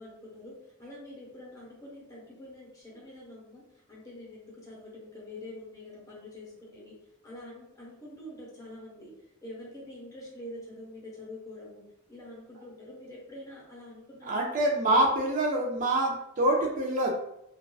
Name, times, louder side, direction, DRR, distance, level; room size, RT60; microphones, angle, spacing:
voice 1, 0.0-3.6 3.9-6.9 7.2-9.1 9.4-14.4, left 1 dB, 15° left, -5 dB, 0.7 m, -46 dB
voice 2, 14.3-17.1, right 1 dB, 40° right, -1 dB, 0.3 m, -25 dB
2.4 x 2.2 x 2.2 m, 0.81 s
head